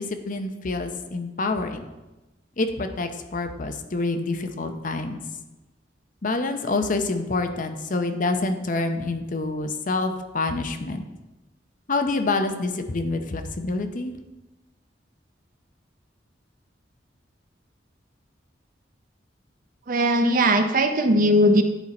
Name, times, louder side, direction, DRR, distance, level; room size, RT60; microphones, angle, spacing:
voice 1, 0.0-1.8 2.6-5.2 6.2-11.0 11.9-14.2, left 3 dB, 45° left, 7 dB, 0.7 m, -27 dB
voice 2, 19.9-21.6, equal, 50° right, 7 dB, 0.7 m, -19 dB
10.5 x 4.5 x 4.3 m, 1.1 s
head